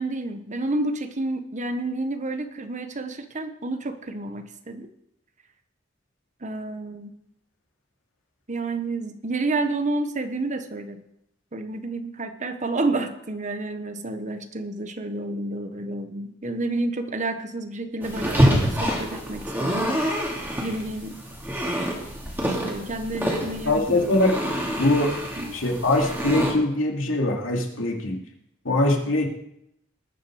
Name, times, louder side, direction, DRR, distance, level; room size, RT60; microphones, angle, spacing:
voice 1, 0.0-4.9 6.4-7.2 8.5-11.0 11.5-20.0 20.6-21.2 22.5-24.1 24.5-24.6 25.4-25.6, right 2 dB, 40° right, 8 dB, 1.2 m, -30 dB
sound 1, 18.0-26.5, equal, 10° right, 2.8 m, -26 dB
voice 2, 23.7-24.4 24.8-25.1 25.5-28.2 28.6-29.3, left 2 dB, 85° left, 0 dB, 2.5 m, -22 dB
19.5 x 6.6 x 6.4 m, 0.78 s
head